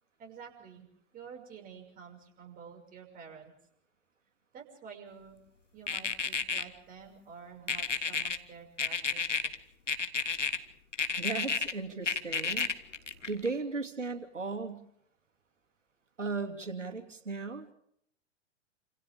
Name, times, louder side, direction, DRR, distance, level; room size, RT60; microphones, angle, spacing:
voice 1, 0.2-0.9 1.1-3.5 4.5-5.4 5.7-9.3, right 6 dB, 25° right, 1 dB, 6.3 m, -49 dB
sound 1, 5.9-6.6 7.7-8.4 8.8-9.6 9.9-10.6 10.9-11.7 12.1-13.5, left 5 dB, 80° left, 1.7 m, -31 dB
voice 2, 11.2-12.7 13.3-14.8 16.2-17.7, right 4 dB, 80° right, 5 dB, 2.9 m, -36 dB
28.5 x 27.0 x 3.7 m, 0.70 s
figure-of-eight pair, 110°, 36 cm